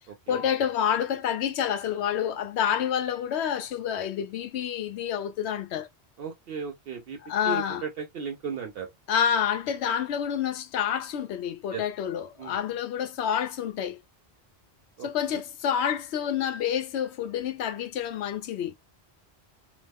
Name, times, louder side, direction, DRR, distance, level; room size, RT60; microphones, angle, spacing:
voice 1, 0.3-5.9 7.3-7.8 9.1-14.0 15.0-18.7, left 9 dB, 85° left, 0.9 m, -28 dB
voice 2, 6.2-7.2 7.4-8.9 11.7-11.8 12.4-12.6 15.0-15.4, right 6 dB, 65° right, 0.8 m, -36 dB
3.0 x 2.1 x 3.3 m
omnidirectional pair, 1.1 m